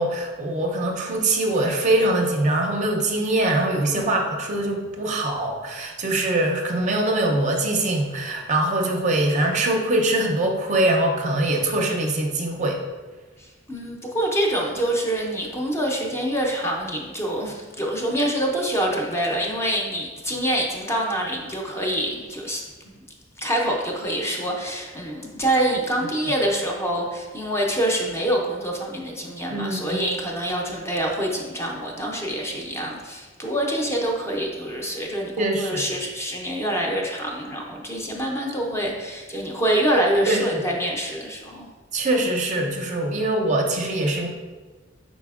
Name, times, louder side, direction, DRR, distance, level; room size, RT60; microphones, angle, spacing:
voice 1, 0.0-12.8 29.5-30.0 35.4-35.8 40.3-40.6 41.9-44.3, right 1 dB, 40° right, 1 dB, 0.5 m, -23 dB
voice 2, 3.9-4.3 13.7-22.6 23.4-41.7, right 1 dB, 15° left, -1 dB, 0.5 m, -26 dB
5.1 x 4.1 x 2.3 m, 1.3 s
head